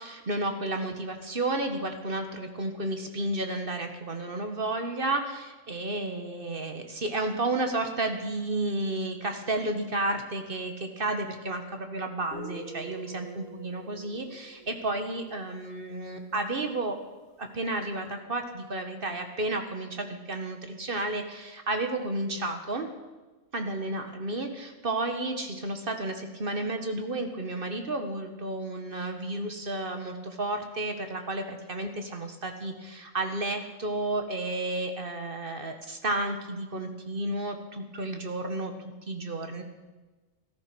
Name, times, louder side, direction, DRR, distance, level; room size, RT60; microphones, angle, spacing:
voice 1, 0.0-17.0 17.4-22.9 23.5-38.7 39.1-39.6, right 2 dB, 45° right, 6 dB, 1.6 m, -32 dB
Guitar, 12.3-15.8, right 1 dB, 55° left, 2.5 m, -45 dB
13.5 x 13.5 x 6.2 m, 1.2 s
omnidirectional pair, 1.3 m